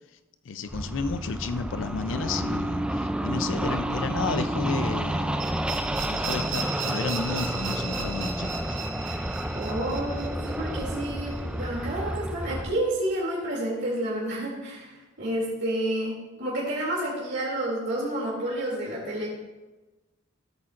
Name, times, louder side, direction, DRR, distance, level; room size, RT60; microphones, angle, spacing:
voice 1, 0.4-5.4 6.1-8.7, left 4 dB, 70° left, 10 dB, 0.5 m, -32 dB
sound 1, 0.7-12.8, right 1 dB, 5° right, 0.3 m, -30 dB
sound 2, 2.3-7.8, right 1 dB, 15° left, 1.1 m, -38 dB
sound 3, 5.4-12.2, right 5 dB, 85° right, 2.0 m, -37 dB
voice 2, 9.5-19.3, right 1 dB, 60° right, -5 dB, 2.7 m, -30 dB
16.0 x 8.7 x 2.5 m, 1.1 s
head